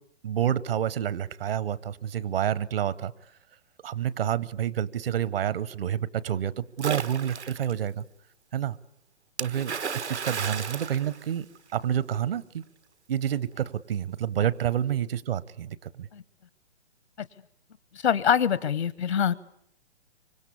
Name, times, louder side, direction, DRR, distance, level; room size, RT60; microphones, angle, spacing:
voice 1, 0.2-3.1 3.8-8.0 8.5-8.8 9.4-9.8 10.1-11.5 11.7-12.6 13.1-16.1, right 10 dB, 60° right, 19 dB, 1.0 m, -28 dB
Splash splatter, 6.8-7.7 9.4-11.8, right 6 dB, 85° right, 1.5 m, -34 dB
voice 2, 17.9-19.3, left 8 dB, 75° left, 17 dB, 1.0 m, -24 dB
27.0 x 25.0 x 8.4 m, 0.72 s
hypercardioid pair, 130°, 33 cm